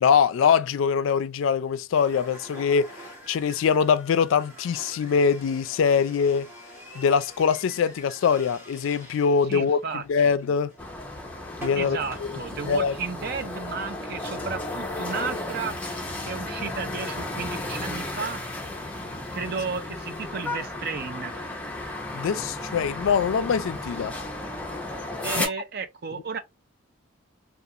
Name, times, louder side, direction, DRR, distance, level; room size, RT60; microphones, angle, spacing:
voice 1, 0.0-2.9 3.3-6.5 7.0-9.8 10.1-10.7 11.6-12.0 12.6-12.9 22.1-24.1 25.3-25.4, left 6 dB, 70° left, 0.3 m, -23 dB
sound 1, 1.9-12.2, equal, 10° right, 1.0 m, -46 dB
voice 2, 9.5-10.3 11.8-15.8 16.3-18.4 19.3-21.4 25.2-26.4, right 5 dB, 50° right, 0.5 m, -33 dB
sound 2, 10.8-25.5, left 2 dB, 5° left, 0.5 m, -34 dB
2.4 x 2.3 x 2.7 m
head